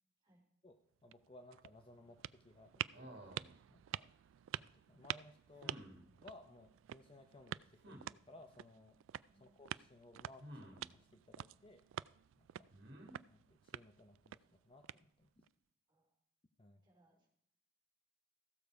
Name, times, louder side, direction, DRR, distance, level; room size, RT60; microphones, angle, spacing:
voice 1, 0.6-3.4 3.7-4.1 4.5-5.8 6.2-9.0 9.3-11.8 12.4-12.7 13.3-15.3 16.6-16.8, left 2 dB, 25° left, 6 dB, 0.7 m, -60 dB
sound 1, 0.9-15.5, right 11 dB, 85° right, 0.3 m, -49 dB
sound 2, 2.9-3.5 5.6-6.0 7.8-8.1 10.4-10.9 12.7-13.1, equal, 60° right, 2.2 m, -53 dB
voice 2, 12.5-12.9 15.9-16.1 16.8-17.3, right 1 dB, 25° right, -1 dB, 3.8 m, -72 dB
15.0 x 6.8 x 4.7 m, 0.73 s
head